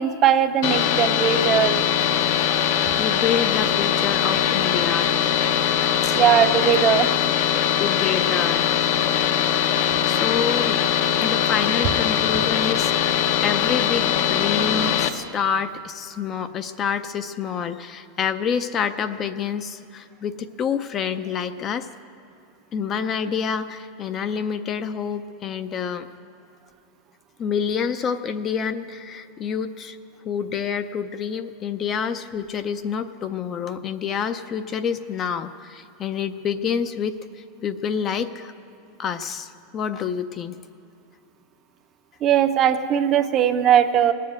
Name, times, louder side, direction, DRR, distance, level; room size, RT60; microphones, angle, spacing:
voice 1, 0.0-1.9 6.1-7.1 42.2-44.1, right 9 dB, 30° right, 9 dB, 0.6 m, -19 dB
sound 1, 0.6-15.1, left 9 dB, 55° left, 0.7 m, -21 dB
voice 2, 3.0-5.1 6.0-6.2 7.8-8.7 9.7-10.8 11.2-21.9 22.7-26.1 27.4-30.0 30.3-37.2 37.6-38.5 39.0-40.6, left 7 dB, 25° left, 10 dB, 0.4 m, -27 dB
19.0 x 7.5 x 9.4 m, 2.6 s
supercardioid pair, 160°, 0 cm